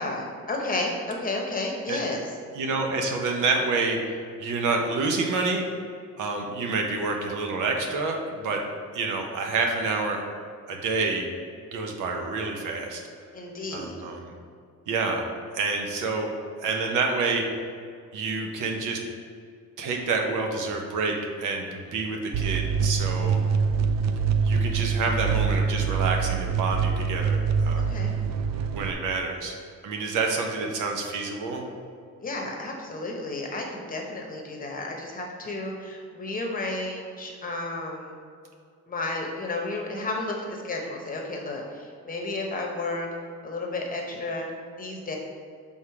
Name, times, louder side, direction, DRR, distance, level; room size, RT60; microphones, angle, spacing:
voice 1, 0.0-2.2 13.3-13.9 27.9-28.1 32.2-38.1 38.9-43.1 43.4-44.5 44.8-45.2, left 2 dB, 25° left, 1 dB, 0.9 m, -32 dB
voice 2, 2.5-4.0 4.4-5.6 6.1-8.6 8.9-10.2 10.7-11.3 11.7-13.0 13.7-14.3 14.9-15.2 15.5-16.3 16.6-17.4 18.1-19.0 19.8-23.4 24.4-27.9 28.7-29.6 29.8-31.6, right 3 dB, 80° right, 2 dB, 1.0 m, -28 dB
sound 1, 22.3-28.9, right 6 dB, 60° right, 0.4 m, -25 dB
6.3 x 3.7 x 4.8 m, 2.3 s
cardioid pair, 150°, 31 cm